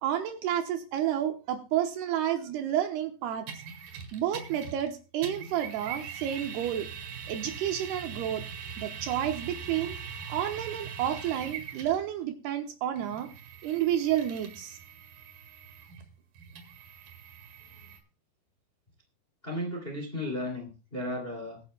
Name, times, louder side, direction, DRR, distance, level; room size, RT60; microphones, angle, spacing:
voice 1, 0.0-3.6 4.1-6.9 7.3-8.4 8.8-10.0 10.3-13.3 13.6-14.8, right 11 dB, 75° right, 6 dB, 2.7 m, -30 dB
sound 1, 3.5-4.9 5.2-12.0 13.0-18.0, right 7 dB, 60° right, 3.2 m, -42 dB
voice 2, 19.4-21.6, left 1 dB, 20° left, 1 dB, 1.9 m, -35 dB
23.5 x 9.6 x 2.2 m, 0.33 s
omnidirectional pair, 5.0 m